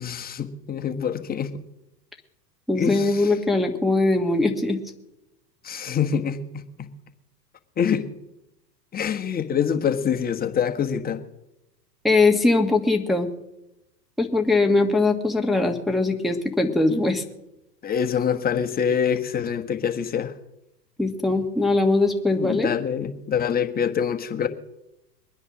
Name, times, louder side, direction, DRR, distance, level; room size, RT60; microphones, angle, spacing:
voice 1, 0.0-1.5 2.7-3.3 5.6-6.9 7.8-8.1 8.9-11.2 17.8-20.3 22.3-24.5, left 7 dB, 20° left, 1.5 m, -25 dB
voice 2, 2.7-4.8 12.0-13.3 14.2-17.2 21.0-22.7, left 2 dB, ahead, 1.6 m, -21 dB
23.0 x 9.8 x 6.2 m
hypercardioid pair, 105°, 50 cm